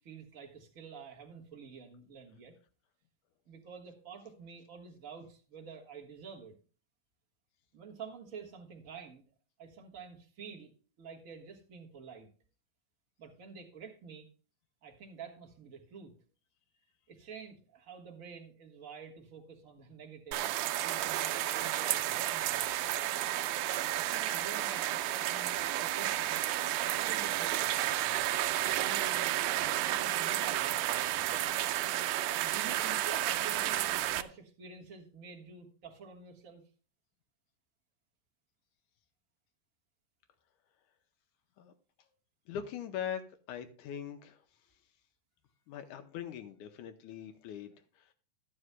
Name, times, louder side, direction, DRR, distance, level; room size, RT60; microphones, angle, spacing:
voice 1, 0.0-2.5 3.5-6.5 7.7-9.2 9.6-10.7 11.0-12.3 13.2-14.3 14.8-16.1 17.1-20.5 20.8-23.1 23.9-26.4 26.9-28.2 28.8-31.4 32.4-36.6, right 6 dB, 40° right, 2 dB, 1.2 m, -49 dB
sound 1, 20.3-34.2, right 14 dB, 85° right, 2.1 m, -31 dB
voice 2, 42.5-44.5 45.7-48.1, left 9 dB, 85° left, 7 dB, 2.2 m, -42 dB
14.0 x 9.5 x 2.2 m, 0.38 s
omnidirectional pair, 3.5 m